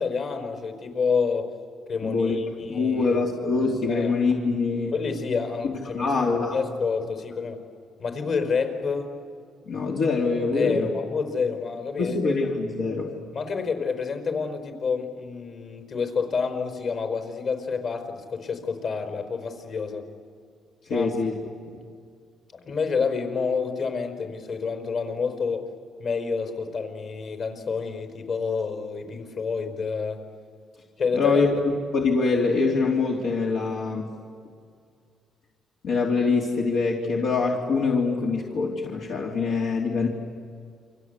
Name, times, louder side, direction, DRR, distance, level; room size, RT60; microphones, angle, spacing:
voice 1, 0.0-1.5 1.9-3.2 3.9-4.1 4.9-7.6 8.0-9.1 10.5-12.3 13.3-20.0 20.9-21.1 22.6-25.7 26.0-30.2 31.0-31.5, left 5 dB, 60° left, 6 dB, 4.8 m, -28 dB
voice 2, 2.0-2.4 2.6-4.9 5.9-6.6 9.7-10.9 12.0-13.1 20.9-21.3 31.1-34.0 35.8-40.1, left 4 dB, 80° left, -2 dB, 3.1 m, -24 dB
29.0 x 24.5 x 8.2 m, 2.2 s
cardioid pair, 90°, 0 cm